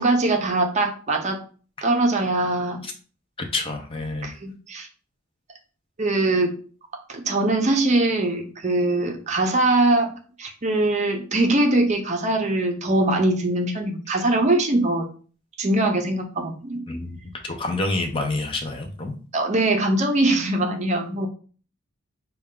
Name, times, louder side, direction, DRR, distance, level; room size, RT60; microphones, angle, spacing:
voice 1, 0.0-1.4 1.8-2.8 4.2-4.9 6.0-6.5 7.1-10.1 10.4-15.1 15.6-16.8 19.3-21.3, right 2 dB, 35° right, 3 dB, 0.6 m, -22 dB
voice 2, 3.4-4.3 16.9-17.2 17.4-19.1, left 2 dB, 25° left, 3 dB, 0.6 m, -28 dB
5.3 x 2.3 x 3.7 m, 0.40 s
head